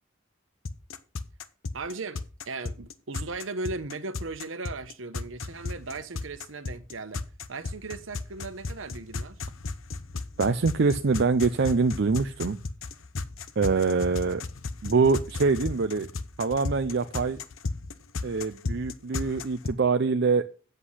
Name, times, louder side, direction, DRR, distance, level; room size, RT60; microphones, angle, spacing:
sound 1, 0.7-19.7, left 3 dB, 80° left, 0.9 m, -34 dB
voice 1, 1.7-7.2 7.5-9.4, right 3 dB, 75° right, 1.1 m, -37 dB
voice 2, 10.4-12.6 13.6-14.4 14.8-16.1 16.4-17.4 18.2-20.4, right 4 dB, 55° right, 0.5 m, -24 dB
8.1 x 8.0 x 5.7 m
head